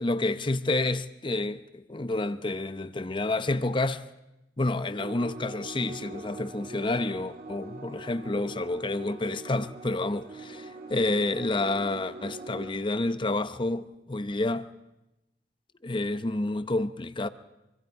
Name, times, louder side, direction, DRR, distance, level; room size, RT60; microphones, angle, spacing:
voice 1, 0.0-4.0 4.6-14.7 15.8-17.3, left 2 dB, 30° left, 0.8 m, -29 dB
sound 1, 5.0-12.7, right 3 dB, 55° right, 2.6 m, -43 dB
25.0 x 25.0 x 4.8 m
head